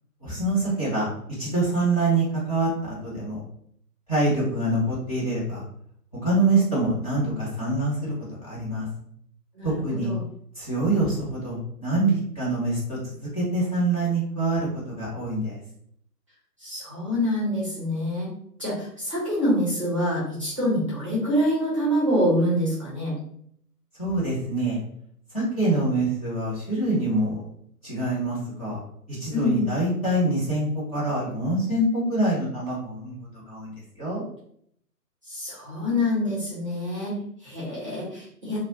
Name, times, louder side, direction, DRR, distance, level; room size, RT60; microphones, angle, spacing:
voice 1, 0.2-1.1 1.4-3.4 4.1-5.6 6.2-8.9 9.6-10.1 10.5-15.6 24.0-24.8 25.3-27.4 27.8-28.8 29.1-30.7 30.9-33.1 33.5-33.7 34.0-34.2, right 2 dB, 25° left, -9 dB, 0.6 m, -25 dB
voice 2, 9.5-10.2 16.6-18.3 18.6-23.1 29.3-29.6 35.3-38.6, equal, 20° right, -7 dB, 0.6 m, -26 dB
2.3 x 2.0 x 2.8 m, 0.68 s
figure-of-eight pair, 135°, 49 cm